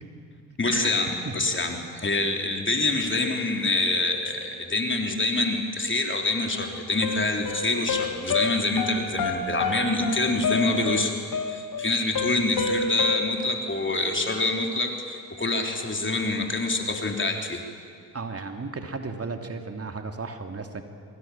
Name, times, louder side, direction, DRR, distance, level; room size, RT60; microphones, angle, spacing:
voice 1, 0.6-11.2 11.4-17.6, left 2 dB, 25° left, 3 dB, 3.8 m, -26 dB
sound 1, 7.0-13.2, left 4 dB, 50° left, 2.5 m, -29 dB
voice 2, 18.1-20.8, right 4 dB, 35° right, 5 dB, 3.0 m, -34 dB
26.0 x 22.5 x 7.5 m, 2.4 s
hypercardioid pair, 50°, 44 cm